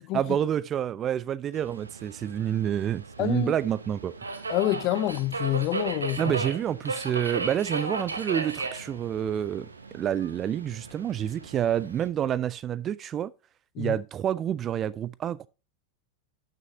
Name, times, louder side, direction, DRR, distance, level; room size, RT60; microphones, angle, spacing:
voice 1, 0.1-4.1 6.2-13.3 13.8-15.5, right 10 dB, 30° right, 0.3 m, -28 dB
Subway metro underground, 1.5-12.1, right 3 dB, 75° right, 0.9 m, -36 dB
voice 2, 3.2-3.5 4.5-6.4 13.8-14.0, left 16 dB, 40° left, 0.6 m, -27 dB
12.0 x 6.3 x 2.7 m
figure-of-eight pair, 90°, 0 cm